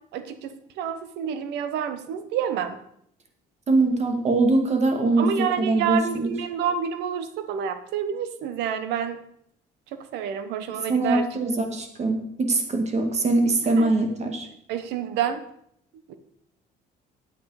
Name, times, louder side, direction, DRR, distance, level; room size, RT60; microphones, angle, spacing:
voice 1, 0.1-2.8 5.2-9.2 10.1-11.3 13.8-13.9 14.7-15.4 16.1-16.2, right 8 dB, 85° right, 11 dB, 1.0 m, -28 dB
voice 2, 3.7-6.3 10.9-14.5, right 2 dB, 40° right, 5 dB, 2.0 m, -22 dB
9.3 x 8.4 x 4.9 m, 0.71 s
cardioid pair, 110°, 17 cm